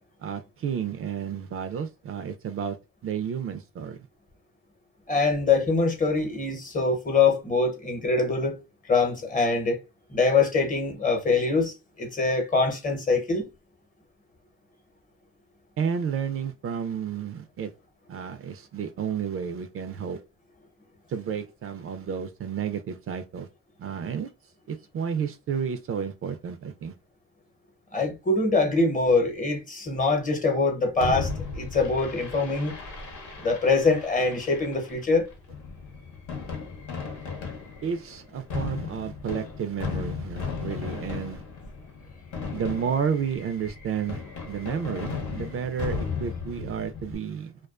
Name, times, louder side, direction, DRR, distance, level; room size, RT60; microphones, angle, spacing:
voice 1, 0.2-2.8 3.0-4.0 15.8-17.7 18.1-20.2 21.1-23.5 23.8-24.3 24.7-26.9 37.8-41.4 42.5-47.6, right 7 dB, 50° right, 0.4 m, -31 dB
voice 2, 5.1-8.6 8.9-9.8 10.1-13.5 27.9-31.3 31.5-32.7 33.4-35.3, left 3 dB, 25° left, 0.8 m, -24 dB
Fireworks, 31.0-47.1, left 5 dB, 75° left, 0.9 m, -36 dB
2.3 x 2.2 x 2.3 m
cardioid pair, 90°, 30 cm